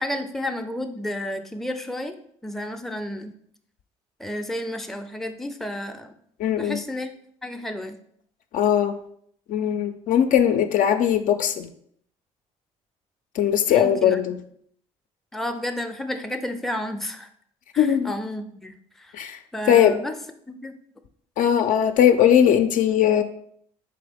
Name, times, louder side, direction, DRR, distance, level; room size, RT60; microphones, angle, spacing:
voice 1, 0.0-2.2 2.4-3.3 4.2-6.1 6.6-7.1 7.4-8.0 13.7-14.2 15.3-17.3 17.7-19.1 19.5-20.2 20.5-20.8, left 1 dB, ahead, 5 dB, 0.4 m, -31 dB
voice 2, 6.4-6.8 8.5-9.0 9.5-11.7 13.4-14.4 17.8-18.1 19.1-19.4 19.7-20.0 21.4-23.2, left 9 dB, 60° left, 8 dB, 0.4 m, -19 dB
3.8 x 3.3 x 3.4 m, 0.66 s
supercardioid pair, 65°, 15 cm